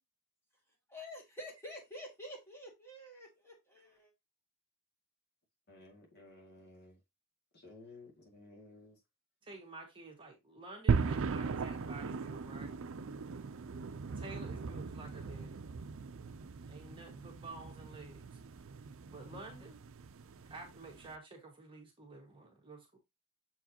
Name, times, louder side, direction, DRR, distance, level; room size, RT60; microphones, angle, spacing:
voice 1, 0.9-4.1, left 1 dB, 10° left, 2.4 m, -48 dB
voice 2, 5.7-7.0 7.5-9.0, left 2 dB, 50° left, 2.2 m, -55 dB
voice 3, 9.4-12.8 14.2-15.6 16.7-18.4 19.1-19.9 20.5-23.0, right 3 dB, 25° right, 1.6 m, -51 dB
sound 1, 10.9-21.2, right 5 dB, 65° right, 0.5 m, -38 dB
7.2 x 4.7 x 2.9 m
head